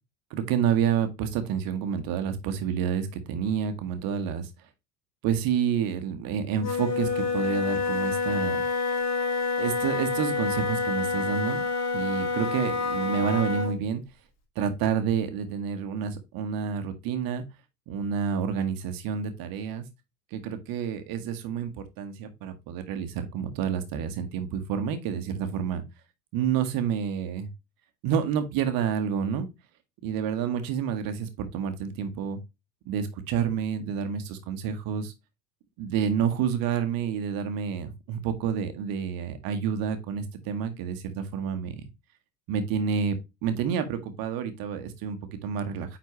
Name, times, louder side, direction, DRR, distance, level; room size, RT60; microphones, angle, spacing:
voice 1, 0.3-4.5 5.2-8.6 9.6-11.6 11.9-14.0 14.5-17.4 17.9-19.8 20.3-25.8 26.3-27.5 28.0-29.5 30.0-32.4 32.8-35.1 35.8-41.8 42.5-43.2 43.4-46.0, right 7 dB, 45° right, 1.3 m, -29 dB
Wind instrument woodwind instrument, 6.6-13.8, left 4 dB, 30° left, 2.1 m, -28 dB
9.2 x 4.1 x 3.0 m
figure-of-eight pair, 75°, 49 cm